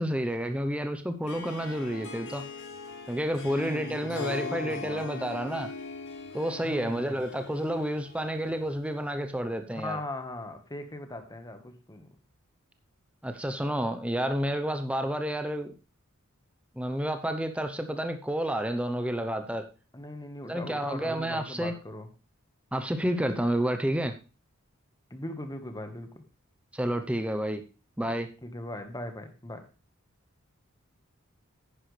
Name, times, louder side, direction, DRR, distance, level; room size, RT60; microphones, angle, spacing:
voice 1, 0.0-2.4 3.1-5.7 6.3-10.0 13.2-15.7 16.8-19.7 20.4-21.7 22.7-24.1 26.7-27.6 28.0-28.3, equal, 5° right, 7 dB, 0.7 m, -30 dB
Harp, 1.2-9.0, left 4 dB, 60° left, 1.9 m, -41 dB
voice 2, 3.4-5.0 6.6-7.2 9.7-12.1 19.9-22.1 25.1-26.2 28.4-29.6, left 1 dB, 15° left, 7 dB, 1.3 m, -39 dB
10.0 x 10.0 x 3.3 m, 0.33 s
head